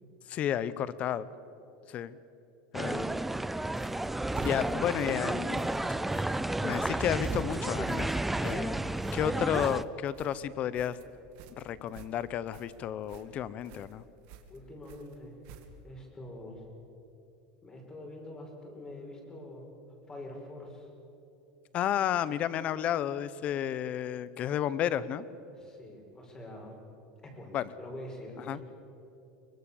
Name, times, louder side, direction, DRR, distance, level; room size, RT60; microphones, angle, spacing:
voice 1, 0.3-1.3 1.9-2.2 2.7-3.2 4.4-5.9 6.6-8.1 8.4-11.0 11.6-14.0 21.7-25.3 27.5-27.7 28.5-28.6, left 10 dB, 35° left, 17 dB, 0.9 m, -32 dB
sound 1, 2.7-9.8, right 2 dB, 5° right, 0.5 m, -32 dB
sound 2, 3.0-9.4, right 8 dB, 35° right, 1.3 m, -50 dB
sound 3, 3.8-16.0, right 8 dB, 60° right, 2.3 m, -54 dB
voice 2, 14.5-15.4 15.8-16.7 17.6-19.7 20.1-20.9 25.6-26.8 27.2-28.6, left 1 dB, 20° left, 1 dB, 5.4 m, -45 dB
24.0 x 21.0 x 7.2 m, 2.9 s
supercardioid pair, 140°, 4 cm